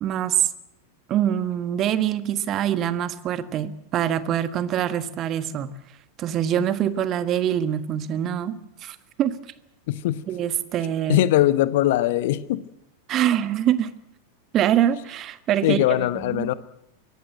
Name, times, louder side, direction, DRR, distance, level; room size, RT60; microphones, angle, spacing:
voice 1, 0.0-0.5 1.1-5.7 6.2-9.3 10.3-11.2 13.1-13.9 14.5-16.5, right 10 dB, 30° right, 13 dB, 1.5 m, -24 dB
voice 2, 9.9-10.2 11.1-12.6 15.6-16.5, left 14 dB, 50° left, 15 dB, 1.1 m, -21 dB
23.5 x 18.0 x 7.9 m, 0.82 s
figure-of-eight pair, 90°, 0 cm